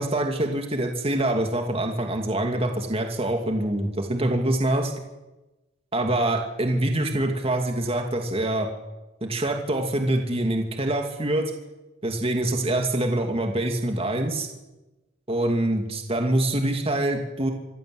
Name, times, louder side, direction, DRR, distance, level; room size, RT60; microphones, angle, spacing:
voice 1, 0.0-4.9 5.9-8.7 9.2-11.4 12.0-14.5 15.3-17.5, right 1 dB, 30° right, 3 dB, 2.5 m, -25 dB
26.0 x 16.0 x 7.9 m, 1.0 s
head